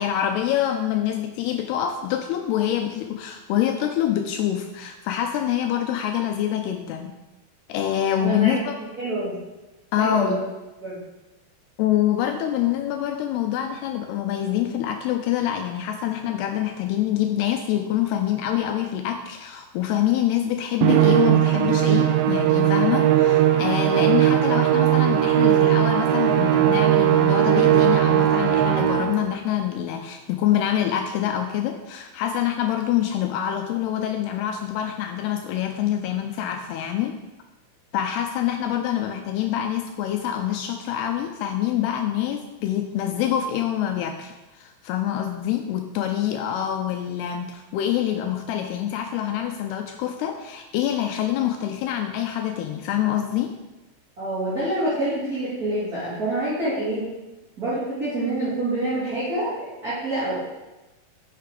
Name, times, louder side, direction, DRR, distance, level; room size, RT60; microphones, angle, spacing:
voice 1, 0.0-7.1 7.7-8.7 9.9-10.4 11.8-37.2 37.9-53.5, left 11 dB, 85° left, 5 dB, 2.3 m, -25 dB
voice 2, 8.2-8.6 9.0-9.3 10.0-10.4 10.8-11.0 54.2-57.1 57.6-59.5 59.8-60.3, right 1 dB, 25° right, -12 dB, 2.5 m, -26 dB
Musical instrument, 20.8-29.3, right 12 dB, 80° right, 2.9 m, -19 dB
9.0 x 6.6 x 5.1 m, 1.1 s
omnidirectional pair, 5.2 m